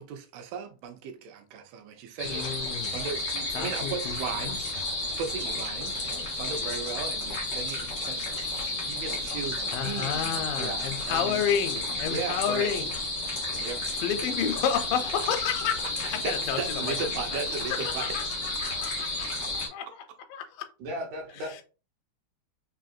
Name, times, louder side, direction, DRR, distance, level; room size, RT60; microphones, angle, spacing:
voice 1, 0.0-4.7 5.2-11.4 11.7-12.7 13.6-13.8 16.1-18.2 18.7-19.3 19.6-19.7, right 6 dB, 90° right, 2.5 m, -37 dB
sound 1, 2.2-19.7, left 2 dB, 65° left, 1.0 m, -32 dB
voice 2, 2.3-3.1 3.5-4.2 4.4-4.6 6.2-6.7 9.7-12.9 13.9-17.4 17.7-19.9 20.3-20.7, left 8 dB, 80° left, 2.1 m, -31 dB
voice 3, 20.8-21.6, left 1 dB, 70° right, 2.0 m, -36 dB
5.7 x 2.6 x 2.5 m
omnidirectional pair, 4.2 m